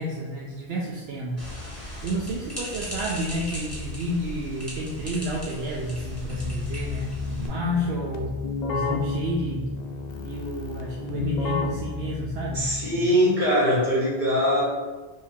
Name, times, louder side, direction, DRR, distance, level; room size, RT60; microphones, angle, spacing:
voice 1, 0.0-1.5 2.0-8.3 8.7-9.7 10.2-12.6 12.9-13.2, equal, 80° right, -3 dB, 0.8 m, -31 dB
sound 1, 1.4-7.5, left 1 dB, 15° left, 1.5 m, -37 dB
Keyboard (musical), 6.3-13.1, left 3 dB, 55° left, 0.5 m, -31 dB
voice 2, 12.5-14.6, equal, 50° right, -7 dB, 1.8 m, -22 dB
4.5 x 2.7 x 3.5 m, 1.3 s
omnidirectional pair, 1.1 m